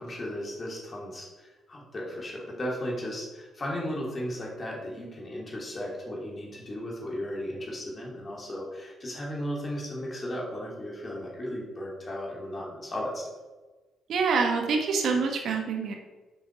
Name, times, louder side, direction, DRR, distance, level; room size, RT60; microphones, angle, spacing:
voice 1, 0.0-13.2, equal, 35° left, -3 dB, 2.7 m, -35 dB
voice 2, 14.1-16.0, right 4 dB, 70° right, 3 dB, 1.3 m, -26 dB
6.8 x 5.4 x 5.1 m, 1.2 s
cardioid pair, 90°, 0 cm